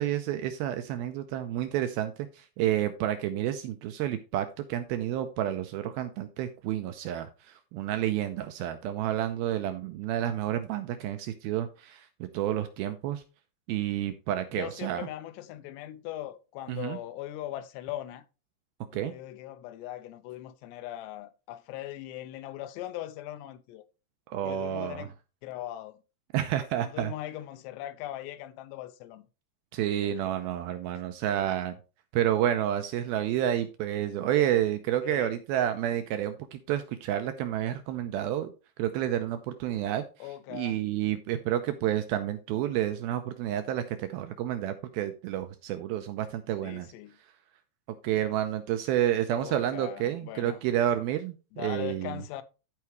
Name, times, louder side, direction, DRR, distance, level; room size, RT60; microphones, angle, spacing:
voice 1, 0.0-13.2 13.7-15.1 16.7-17.0 18.9-19.1 24.3-25.1 26.3-27.1 29.7-31.8 32.1-38.5 38.8-40.0 40.5-46.9 48.0-52.2, right 11 dB, 85° right, 2.2 m, -30 dB
voice 2, 14.5-18.2 18.9-23.8 24.4-25.1 25.4-26.0 26.8-29.2 30.0-30.3 35.0-35.4 40.2-40.8 46.6-47.2 49.3-50.6 51.5-52.4, left 13 dB, 85° left, 2.8 m, -40 dB
14.0 x 4.7 x 3.1 m
omnidirectional pair, 4.9 m